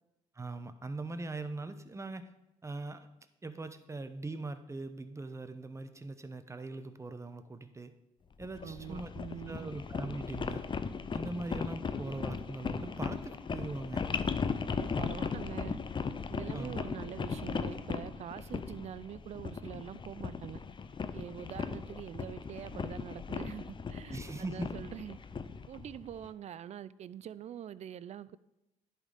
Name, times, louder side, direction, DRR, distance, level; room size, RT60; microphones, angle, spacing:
voice 1, 0.3-2.3 2.6-3.1 3.4-7.9 8.4-9.1 9.5-10.7 11.1-14.0 16.5-16.9 24.1-24.7, right 2 dB, 20° right, 0.8 m, -41 dB
sound 1, 8.4-26.3, left 5 dB, 35° left, 0.6 m, -38 dB
voice 2, 8.6-9.7 14.7-15.8 16.3-20.6 21.1-25.2 25.7-28.4, right 9 dB, 50° right, 0.4 m, -44 dB
10.5 x 4.2 x 5.1 m
supercardioid pair, 65°, 15 cm